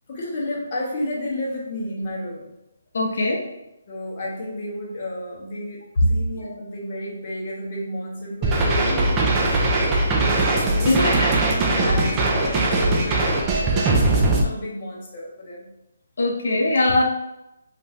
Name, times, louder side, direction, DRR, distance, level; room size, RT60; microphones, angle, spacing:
voice 1, 0.1-2.5 3.9-11.1 11.4-15.7, left 1 dB, 35° left, -3 dB, 0.8 m, -32 dB
voice 2, 2.9-3.4 6.0-6.1 10.9-11.3 16.2-17.0, left 2 dB, 60° left, 0 dB, 0.5 m, -20 dB
sound 1, 8.4-14.4, right 2 dB, 15° right, 0.3 m, -20 dB
2.5 x 2.5 x 3.2 m, 0.91 s
hypercardioid pair, 170°, 0 cm